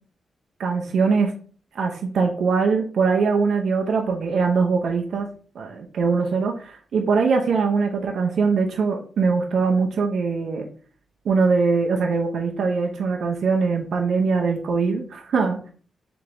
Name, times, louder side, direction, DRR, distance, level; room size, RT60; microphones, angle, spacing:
voice 1, 0.6-1.3 1.7-5.3 5.5-10.7 11.2-15.7, right 4 dB, 75° right, 2 dB, 0.7 m, -22 dB
3.4 x 3.4 x 3.9 m, 0.42 s
wide cardioid pair, 120°, 0 cm